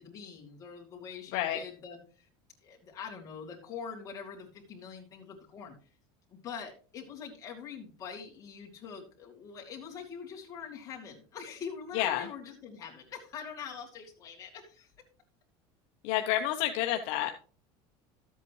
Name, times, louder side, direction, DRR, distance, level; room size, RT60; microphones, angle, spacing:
voice 1, 0.0-2.3 2.6-5.7 6.3-14.9, left 6 dB, 25° left, -1 dB, 2.5 m, -44 dB
voice 2, 11.9-12.3 16.0-17.3, left 12 dB, 55° left, 5 dB, 0.8 m, -29 dB
13.0 x 8.1 x 3.1 m, 0.38 s
cardioid pair, 170°, 13 cm